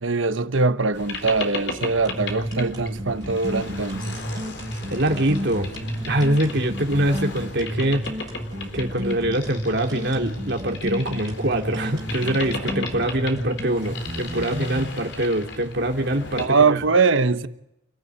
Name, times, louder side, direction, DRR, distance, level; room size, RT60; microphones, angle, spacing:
voice 1, 0.0-4.2 16.4-17.5, right 4 dB, 90° right, 1.1 m, -22 dB
Boat Water vehicle, 0.9-16.5, left 3 dB, 65° left, 4.0 m, -36 dB
sound 1, 2.0-14.9, equal, 20° right, 7.4 m, -32 dB
voice 2, 4.9-5.7 6.1-8.0 8.7-16.8, right 1 dB, 60° right, 2.8 m, -24 dB
29.0 x 15.5 x 9.8 m
head